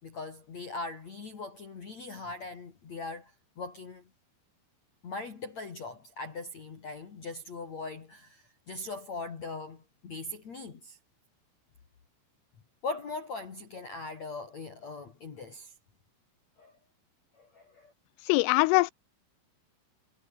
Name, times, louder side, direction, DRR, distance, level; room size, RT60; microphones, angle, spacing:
voice 1, 0.0-4.0 5.0-11.0 12.8-15.7 16.6-16.7 17.4-17.9, left 3 dB, 40° left, 3.5 m, -40 dB
voice 2, 18.3-18.9, left 24 dB, 85° left, 3.2 m, -22 dB
omnidirectional pair, 5.8 m